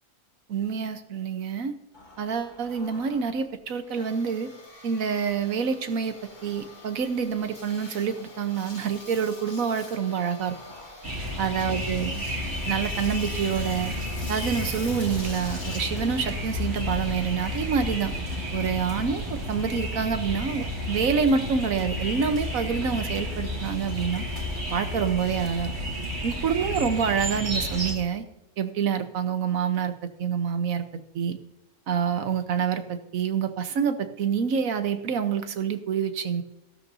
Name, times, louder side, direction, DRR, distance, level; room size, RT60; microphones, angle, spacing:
voice 1, 0.5-1.8 2.2-4.5 4.8-6.2 6.4-10.6 11.4-12.2 12.6-13.9 14.3-18.1 18.5-24.3 24.7-25.7 26.2-28.2 28.6-30.9 31.1-31.4 31.9-36.4, right 6 dB, 70° right, 9 dB, 1.3 m, -27 dB
Engine, 1.9-20.4, left 2 dB, 30° left, 1.7 m, -46 dB
sound 1, 11.0-27.9, equal, 45° right, 2.6 m, -31 dB
15.0 x 12.5 x 2.7 m, 0.91 s
omnidirectional pair, 1.6 m